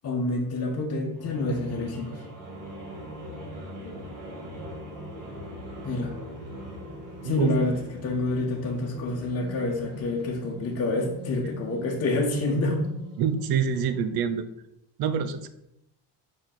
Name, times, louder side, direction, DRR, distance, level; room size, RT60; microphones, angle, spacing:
voice 1, 0.0-2.2 3.8-4.1 5.8-6.2 7.2-12.8, left 2 dB, 35° left, -1 dB, 1.1 m, -28 dB
sound 1, 1.1-14.4, equal, 90° right, 2.4 m, -42 dB
voice 2, 7.2-7.5 13.2-14.5 15.0-15.5, right 7 dB, 55° right, 12 dB, 0.7 m, -26 dB
6.2 x 4.6 x 3.8 m, 0.81 s
cardioid pair, 140°, 44 cm